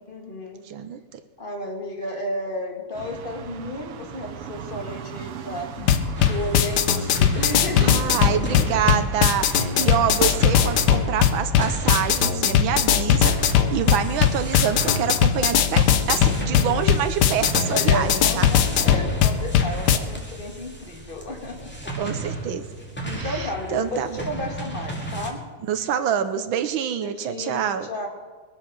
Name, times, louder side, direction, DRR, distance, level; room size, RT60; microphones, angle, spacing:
voice 1, 0.1-0.7 1.4-5.7 6.3-8.9 9.7-10.1 16.4-16.9 17.6-22.2 23.0-25.5 27.0-28.1, left 1 dB, 25° left, 3 dB, 1.8 m, -33 dB
voice 2, 0.6-1.2 7.8-18.5 19.9-20.0 22.0-22.6 23.1-24.2 25.7-27.9, right 8 dB, 70° right, 9 dB, 1.4 m, -26 dB
sound 1, 2.9-14.6, right 8 dB, 85° right, 1.9 m, -39 dB
sound 2, 5.8-20.0, left 9 dB, 60° left, 1.2 m, -20 dB
sound 3, 6.2-25.3, right 2 dB, 5° left, 2.0 m, -35 dB
21.5 x 7.6 x 6.2 m, 1.5 s
omnidirectional pair, 2.4 m